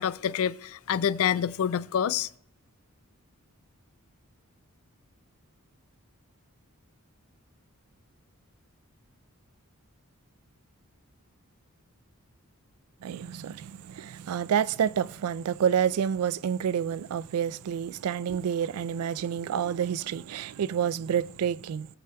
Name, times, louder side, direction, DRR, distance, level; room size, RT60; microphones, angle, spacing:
voice 1, 0.0-2.3, left 8 dB, 65° left, 0.4 m, -27 dB
voice 2, 13.0-21.9, right 8 dB, 75° right, 0.3 m, -28 dB
18.5 x 7.7 x 2.2 m
head